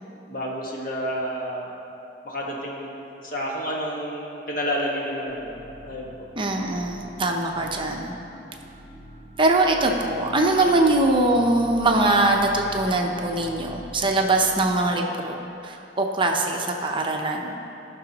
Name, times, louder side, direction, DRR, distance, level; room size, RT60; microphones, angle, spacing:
voice 1, 0.3-1.7 2.2-2.9 3.2-6.1 10.6-10.9, equal, 50° left, -3 dB, 1.4 m, -30 dB
sound 1, 5.3-15.1, equal, 20° left, 1.4 m, -44 dB
voice 2, 6.4-8.2 9.4-17.6, right 2 dB, 30° right, 2 dB, 0.7 m, -22 dB
16.0 x 6.0 x 2.9 m, 2.8 s
head